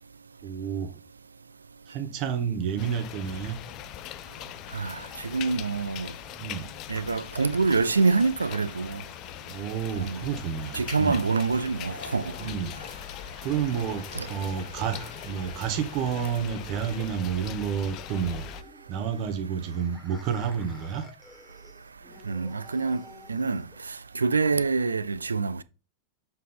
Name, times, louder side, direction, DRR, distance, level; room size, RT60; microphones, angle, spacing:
voice 1, 0.4-0.9 1.9-3.6 6.4-6.7 9.5-11.2 12.4-12.8 13.4-18.5 18.9-21.0, right 7 dB, 40° right, 1.1 m, -30 dB
sound 1, 2.8-18.6, left 12 dB, 40° left, 0.4 m, -41 dB
voice 2, 4.7-6.1 6.9-9.0 10.0-10.2 10.7-12.3 13.7-13.8 14.1-14.3 22.3-23.0 23.3-25.6, right 4 dB, 75° right, 0.3 m, -26 dB
sound 2, 10.9-23.9, left 1 dB, ahead, 1.6 m, -52 dB
7.3 x 3.9 x 3.7 m
figure-of-eight pair, 90°, 0 cm